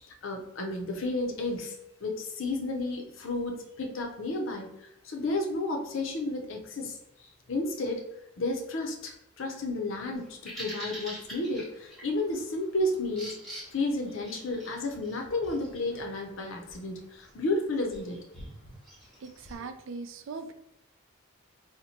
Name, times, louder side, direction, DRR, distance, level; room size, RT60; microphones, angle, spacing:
voice 1, 0.0-1.7 2.0-4.7 5.0-7.0 7.5-8.0 8.4-13.4 13.7-18.2, left 2 dB, 65° left, 2 dB, 0.6 m, -32 dB
Bird vocalization bird call bird song, 10.1-19.6, equal, ahead, 1.0 m, -46 dB
voice 2, 19.2-20.5, right 4 dB, 60° right, 8 dB, 0.3 m, -40 dB
2.9 x 2.1 x 4.1 m, 0.86 s
head